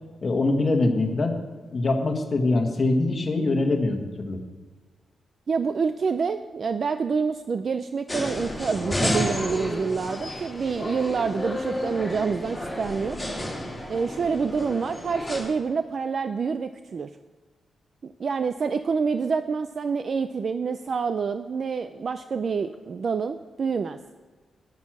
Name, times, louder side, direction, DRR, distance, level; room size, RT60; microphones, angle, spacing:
voice 1, 0.2-1.3 1.7-4.4, left 2 dB, 30° left, 3 dB, 1.5 m, -23 dB
voice 2, 5.5-13.2 13.9-17.1 18.0-24.0, right 5 dB, 40° right, 10 dB, 0.4 m, -27 dB
sound 1, 8.1-15.4, left 1 dB, 5° left, 3.3 m, -31 dB
10.5 x 9.4 x 6.1 m, 1.4 s
wide cardioid pair, 170°, 0 cm